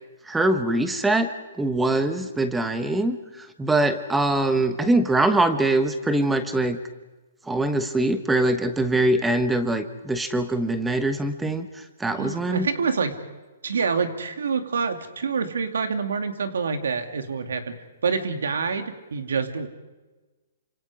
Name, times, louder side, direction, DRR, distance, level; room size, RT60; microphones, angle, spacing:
voice 1, 0.2-1.3 1.6-6.8 7.5-12.7, right 2 dB, 5° right, 9 dB, 1.2 m, -23 dB
voice 2, 12.1-13.2 13.6-17.8 18.0-19.7, right 5 dB, 90° right, 7 dB, 2.5 m, -26 dB
28.0 x 26.5 x 5.0 m, 1.2 s
hypercardioid pair, 165°, 0 cm